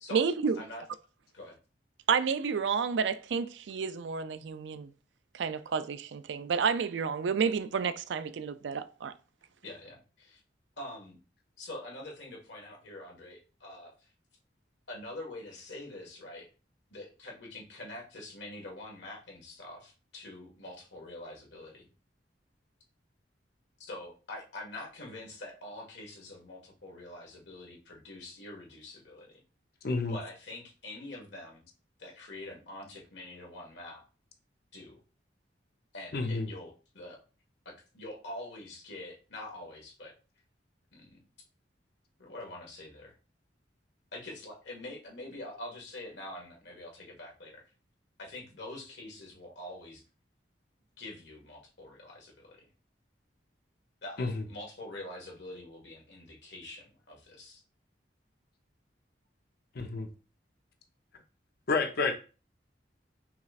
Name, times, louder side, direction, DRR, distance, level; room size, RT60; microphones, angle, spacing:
voice 1, 0.1-0.6 2.1-4.9 5.3-9.1, right 6 dB, 80° right, 0.4 m, -30 dB
voice 2, 9.6-10.4 10.8-11.2 11.6-13.9 14.9-16.5 16.9-21.9 23.8-29.3 30.1-31.6 32.0-34.0 34.7-34.9 35.9-37.2 37.6-40.1 40.9-41.2 42.2-43.1 44.1-47.6 48.2-50.0 51.0-52.7 54.0-57.6, left 1 dB, 75° left, 1.6 m, -45 dB
voice 3, 29.8-30.2 36.1-36.5 54.2-54.4 59.7-60.1 61.7-62.1, left 3 dB, 60° left, 0.7 m, -29 dB
5.8 x 3.1 x 2.4 m
head